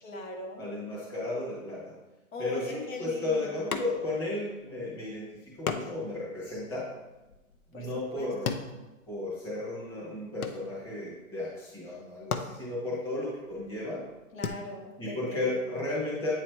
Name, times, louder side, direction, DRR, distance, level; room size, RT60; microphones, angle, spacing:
voice 1, 0.0-0.6 2.3-3.5 7.7-7.9 8.1-8.3 14.3-15.4, left 2 dB, 70° left, 0 dB, 1.7 m, -40 dB
voice 2, 0.6-1.9 2.4-6.9 7.7-8.5 9.1-14.0 15.0-16.3, left 2 dB, 10° left, -8 dB, 1.3 m, -34 dB
sound 1, 3.7-4.3 4.6-4.7 5.7-9.6 9.9-11.1 11.8-11.9 12.2-14.5, left 6 dB, 90° left, 0.8 m, -37 dB
8.5 x 3.2 x 4.5 m, 1.1 s
hypercardioid pair, 165°, 42 cm